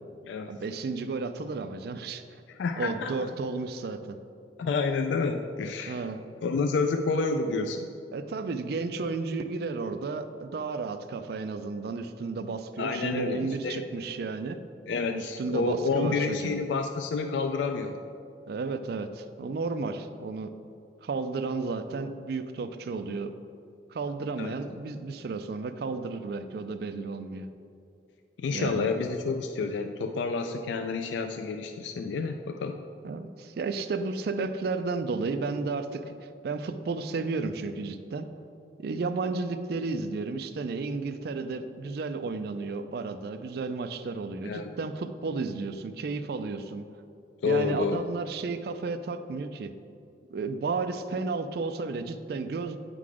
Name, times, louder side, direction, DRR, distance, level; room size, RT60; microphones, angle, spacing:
voice 1, 0.4-2.2 2.8-4.2 5.9-6.2 8.1-14.6 15.1-16.6 18.5-20.5 21.0-23.3 23.9-27.5 28.5-28.9 33.0-36.1 36.4-38.3 38.8-46.9 47.4-49.7 50.3-52.8, right 4 dB, 60° right, 10 dB, 0.4 m, -33 dB
voice 2, 2.5-3.1 4.6-6.0 6.4-7.9 12.8-13.9 14.9-18.0 24.4-24.6 28.4-32.8 44.4-44.7 47.4-48.0, left 4 dB, 90° left, 6 dB, 0.3 m, -29 dB
8.5 x 3.8 x 4.8 m, 2.5 s
head